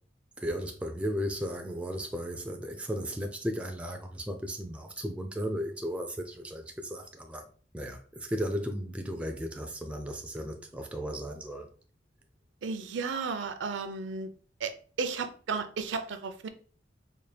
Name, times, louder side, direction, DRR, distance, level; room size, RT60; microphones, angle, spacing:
voice 1, 0.4-7.5 7.7-11.7, equal, 5° right, 0.3 m, -35 dB
voice 2, 12.6-14.3 14.6-16.5, right 5 dB, 70° right, 0.5 m, -34 dB
4.2 x 2.1 x 3.2 m
head